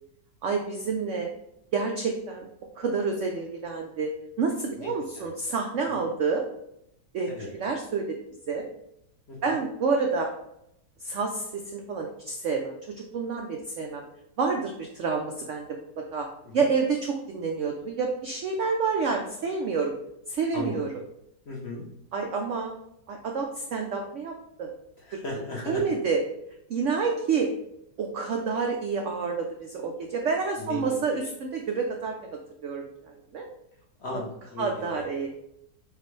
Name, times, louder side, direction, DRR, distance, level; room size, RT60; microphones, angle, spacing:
voice 1, 0.4-1.3 1.7-2.5 2.8-4.1 4.4-6.4 7.1-8.2 8.5-8.6 9.4-10.3 11.0-12.7 13.1-14.0 14.4-15.8 16.1-16.3 16.5-19.9 20.3-20.9 22.1-22.7 23.1-24.7 25.1-25.2 25.6-26.2 26.7-27.5 28.0-33.5 34.1-34.2 34.6-35.3, right 5 dB, 85° right, 2 dB, 0.6 m, -28 dB
voice 2, 21.5-21.8 25.1-25.8 30.6-31.0 34.0-35.1, left 2 dB, 50° left, -3 dB, 0.8 m, -36 dB
6.8 x 2.4 x 3.2 m, 0.77 s
omnidirectional pair, 1.9 m